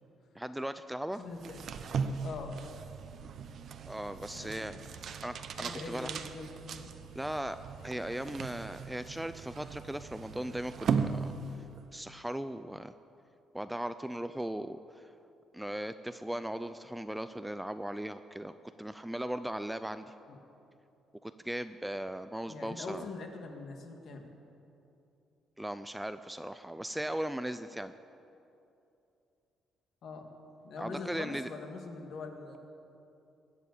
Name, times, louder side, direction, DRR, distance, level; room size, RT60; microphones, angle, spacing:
voice 1, 0.4-1.2 3.9-4.8 5.2-6.2 7.2-7.6 7.8-11.3 11.9-12.9 13.5-15.1 15.5-20.1 21.2-23.0 25.6-27.9 30.8-31.5, right 1 dB, 5° right, 11 dB, 0.3 m, -38 dB
voice 2, 1.2-1.7 2.2-2.6 4.3-5.1 5.6-7.0 20.3-20.4 22.5-24.3 30.0-30.3 30.6-32.6, left 3 dB, 50° left, 4 dB, 1.8 m, -43 dB
sound 1, 1.3-11.9, right 6 dB, 45° right, 0.7 m, -38 dB
21.5 x 7.1 x 8.4 m, 2.8 s
cardioid pair, 160°, 0 cm